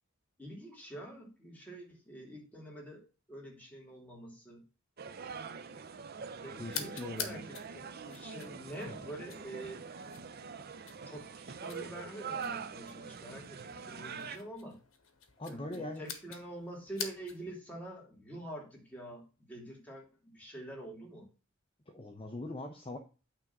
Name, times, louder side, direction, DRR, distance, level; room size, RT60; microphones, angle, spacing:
voice 1, 0.4-4.6 6.4-9.9 11.0-14.8 15.5-20.0 20.3-21.3, right 1 dB, 10° left, -2 dB, 2.8 m, -46 dB
sound 1, 5.0-14.4, right 5 dB, 50° right, 0.6 m, -44 dB
voice 2, 6.6-7.5 8.9-9.0 15.4-16.2 21.9-23.0, left 1 dB, 25° left, 4 dB, 0.8 m, -42 dB
sound 2, 6.7-17.6, left 7 dB, 75° left, 1.3 m, -47 dB
9.0 x 3.6 x 6.0 m, 0.32 s
head